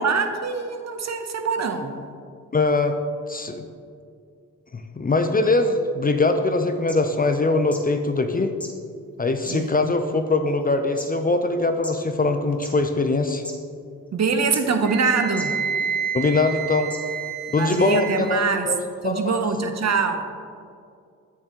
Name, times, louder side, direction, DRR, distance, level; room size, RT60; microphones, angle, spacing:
voice 1, 0.0-1.9 9.5-9.9 14.1-15.5 17.6-18.7 19.0-20.3, right 5 dB, 45° right, 6 dB, 0.8 m, -24 dB
voice 2, 2.5-3.0 3.3-3.7 4.7-8.5 9.2-13.4 16.1-16.9 17.5-19.4, left 3 dB, 25° left, 7 dB, 0.5 m, -22 dB
sound 1, 6.6-6.7 6.9-7.0 7.7-7.8 8.6-8.7 9.5-9.9 10.6-11.1 11.8-11.9 12.5-12.7 13.4-13.5 14.5-14.8 15.4-15.5 16.2-16.3 16.9-17.0 17.7-17.8 18.6-18.7, equal, 5° left, 1.4 m, -36 dB
Wind instrument woodwind instrument, 14.8-18.3, right 7 dB, 25° right, 1.7 m, -29 dB
8.4 x 6.5 x 2.9 m, 2.3 s
hypercardioid pair, 45°, 37 cm